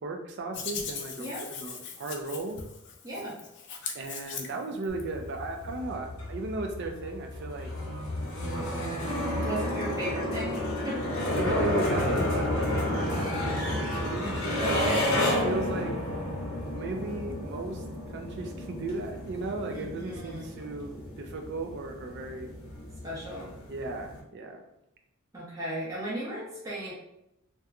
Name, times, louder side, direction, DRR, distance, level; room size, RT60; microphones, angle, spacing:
voice 1, 0.0-2.6 3.9-7.7 11.4-16.0 16.6-17.8 18.1-22.5 23.7-24.6, right 2 dB, 55° right, 4 dB, 0.4 m, -36 dB
Hands, 0.5-5.0, left 6 dB, 55° left, 0.4 m, -39 dB
voice 2, 3.0-3.4 9.4-10.6 10.8-11.4 14.6-15.1 19.7-20.6 23.0-23.5 25.3-26.9, right 1 dB, 15° right, -7 dB, 0.7 m, -36 dB
sound 1, 4.9-24.2, left 1 dB, 75° left, 0.8 m, -32 dB
sound 2, 8.4-15.0, right 4 dB, 75° right, 0.9 m, -39 dB
2.8 x 2.3 x 2.3 m, 0.84 s
head